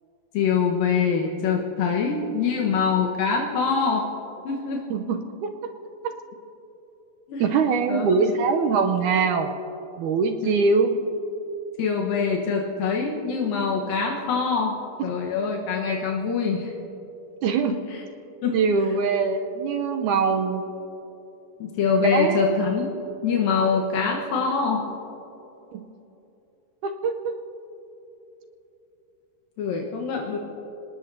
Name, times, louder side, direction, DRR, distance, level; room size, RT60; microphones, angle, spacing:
voice 1, 0.3-4.1 4.4-4.8 7.3-7.4 7.9-8.0 10.4-10.6 11.8-16.7 17.7-18.0 18.4-18.6 21.6-22.9 23.2-24.9 29.6-30.4, left 5 dB, 80° left, -1 dB, 3.0 m, -24 dB
voice 2, 4.9-5.5 7.4-9.5 10.0-10.9 17.4-17.8 18.5-20.6 22.0-22.5 25.7-25.9 26.8-27.3, right 5 dB, 75° right, 5 dB, 2.1 m, -23 dB
26.0 x 19.5 x 2.8 m, 3.0 s
omnidirectional pair, 4.0 m